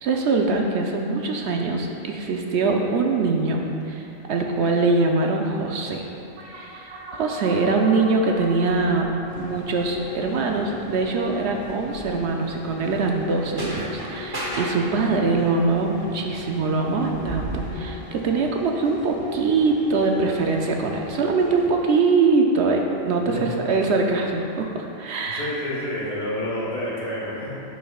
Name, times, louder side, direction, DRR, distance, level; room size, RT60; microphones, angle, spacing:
voice 1, 0.0-6.0 6.5-25.5, right 3 dB, 65° right, 2 dB, 0.8 m, -23 dB
sound 1, 4.5-4.7 5.6-17.7, right 1 dB, 20° right, 0.8 m, -39 dB
sound 2, 6.4-11.2, right 2 dB, 85° right, 1.3 m, -41 dB
sound 3, 9.3-21.7, left 3 dB, 45° left, 1.2 m, -39 dB
voice 2, 23.2-23.7 25.3-27.5, left 1 dB, 80° left, -5 dB, 1.7 m, -29 dB
9.1 x 5.7 x 2.3 m, 2.7 s
omnidirectional pair, 1.3 m